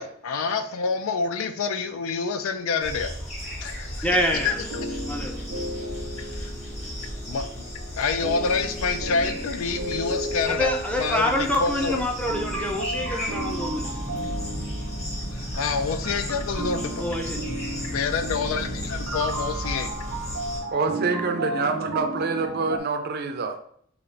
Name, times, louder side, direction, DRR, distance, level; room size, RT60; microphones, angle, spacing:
voice 1, 0.0-3.1 3.6-4.1 4.4-4.5 4.8-5.0 6.2-6.5 7.3-7.5 8.0-12.0 15.3-17.0 17.9-19.9, left 5 dB, 80° left, 9 dB, 0.4 m, -27 dB
sound 1, 2.8-20.6, equal, 35° left, 1.4 m, -34 dB
voice 2, 4.0-4.6 5.1-5.3 10.5-13.9 17.0-17.4, left 1 dB, 5° left, 2 dB, 0.4 m, -26 dB
sound 2, 4.4-22.8, right 1 dB, 85° right, 0.7 m, -35 dB
voice 3, 20.7-23.6, right 4 dB, 50° right, 6 dB, 0.4 m, -26 dB
3.3 x 2.4 x 3.7 m, 0.63 s
head